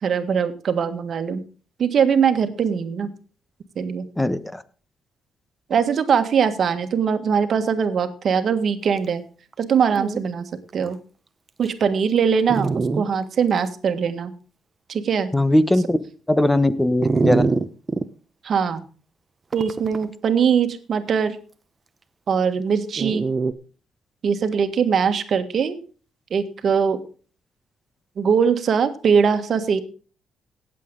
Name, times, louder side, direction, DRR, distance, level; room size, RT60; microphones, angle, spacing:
voice 1, 0.0-1.4 1.8-3.1 3.7-4.1 5.7-9.2 9.6-10.5 10.7-11.0 11.6-14.3 14.9-15.3 18.4-18.8 19.5-21.4 22.3-23.2 24.2-25.8 26.3-27.0 28.2-29.8, right 6 dB, 55° right, 8 dB, 1.5 m, -21 dB
voice 2, 4.2-4.6 15.3-16.0 16.3-17.4, left 1 dB, 10° left, 14 dB, 1.0 m, -19 dB
Dog, 9.5-9.6 9.9-10.2 10.9-11.0 11.6-11.7 12.5-13.0 13.6-13.7 17.0-18.1 19.5-20.0 23.0-23.5, right 4 dB, 30° right, 0.8 m, -23 dB
18.0 x 7.6 x 3.8 m, 0.38 s
cardioid pair, 90°, 0 cm